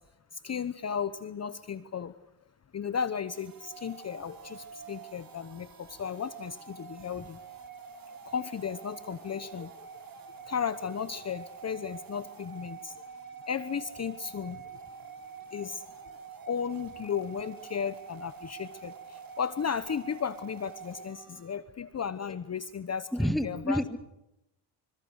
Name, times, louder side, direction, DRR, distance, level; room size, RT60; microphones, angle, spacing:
voice 1, 0.4-2.1 2.7-7.4 8.3-9.7 10.5-12.9 13.5-14.6 15.5-15.8 16.5-23.8, left 7 dB, 30° left, 13 dB, 1.0 m, -35 dB
sound 1, 3.3-21.5, right 6 dB, 40° right, 4.6 m, -47 dB
voice 2, 23.1-24.0, equal, ahead, 10 dB, 1.6 m, -28 dB
26.5 x 26.0 x 6.5 m, 0.86 s
cardioid pair, 105°, 50 cm